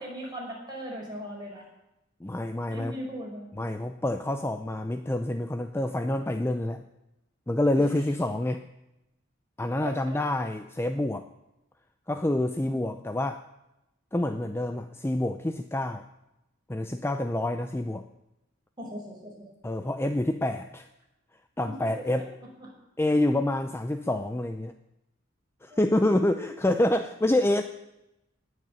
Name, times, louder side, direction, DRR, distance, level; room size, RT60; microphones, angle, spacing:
voice 1, 0.0-1.6 2.7-3.5 7.8-7.9 9.8-10.2 12.6-12.9 18.8-19.5 21.6-22.3 22.6-22.7 25.7-26.4, equal, 20° right, -2 dB, 5.4 m, -39 dB
voice 2, 2.2-3.0 3.5-6.8 7.5-8.6 9.6-11.2 12.1-13.4 14.1-16.0 16.7-18.0 19.6-20.9 21.6-22.3 23.0-24.7 25.6-27.6, left 1 dB, 10° left, 8 dB, 0.5 m, -27 dB
19.0 x 6.6 x 8.8 m, 0.91 s
head